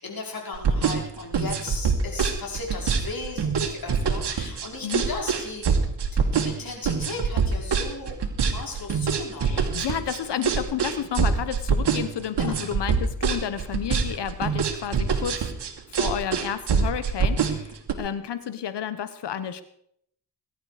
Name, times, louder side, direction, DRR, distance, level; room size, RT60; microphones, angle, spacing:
voice 1, 0.0-5.7 6.1-8.2 8.5-9.6 12.3-12.6, left 3 dB, 55° left, 0 dB, 5.2 m, -36 dB
sound 1, 0.5-17.9, right 6 dB, 75° right, 2.5 m, -24 dB
voice 2, 9.4-15.5 15.9-19.6, left 9 dB, 80° left, 12 dB, 1.2 m, -31 dB
21.0 x 11.5 x 5.1 m, 0.71 s
cardioid pair, 70°, 41 cm